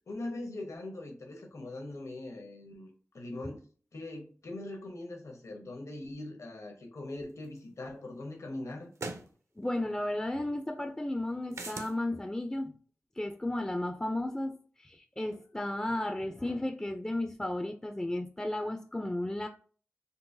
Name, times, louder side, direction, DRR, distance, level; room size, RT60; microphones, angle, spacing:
voice 1, 0.1-2.9 3.1-3.6 3.9-8.9, left 2 dB, 65° left, 3 dB, 0.8 m, -41 dB
sound 1, 7.6-7.7 9.0-9.3 11.5-12.0, right 3 dB, 65° right, 0.5 m, -39 dB
voice 2, 9.6-12.7 13.2-19.5, left 1 dB, 15° left, 5 dB, 0.3 m, -34 dB
3.8 x 2.2 x 2.6 m, 0.42 s
cardioid pair, 50°, 5 cm